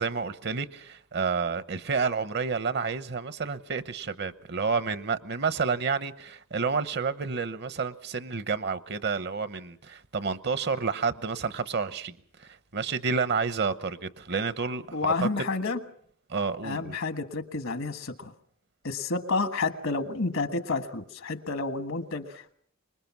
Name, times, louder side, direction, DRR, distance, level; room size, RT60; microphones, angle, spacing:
voice 1, 0.0-15.3 16.3-17.0, right 5 dB, 55° right, 0.9 m, -30 dB
voice 2, 14.9-15.8 16.6-18.3 18.8-22.5, left 3 dB, 75° left, 1.5 m, -30 dB
25.0 x 21.0 x 6.0 m
head